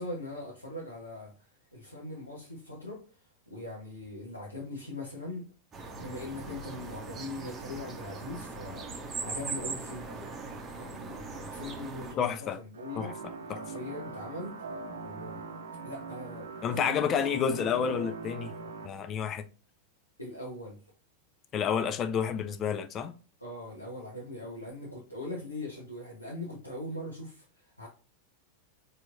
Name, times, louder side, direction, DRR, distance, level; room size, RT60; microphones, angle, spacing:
voice 1, 0.0-1.3 1.7-3.0 3.5-5.4 6.0-10.3 10.8-13.1 13.5-14.6 15.0-15.4 15.8-17.7 20.2-20.8 23.4-27.4 27.8-27.9, left 2 dB, 85° left, 1.2 m, -41 dB
sound 1, 5.7-12.1, right 4 dB, 20° right, 0.8 m, -40 dB
voice 2, 12.2-12.6 13.0-13.6 16.6-18.5 18.8-19.4 21.5-23.2, left 7 dB, 30° left, 0.5 m, -30 dB
sound 2, 12.7-18.9, right 4 dB, 65° right, 0.7 m, -41 dB
4.4 x 3.4 x 2.6 m
figure-of-eight pair, 90°, 0 cm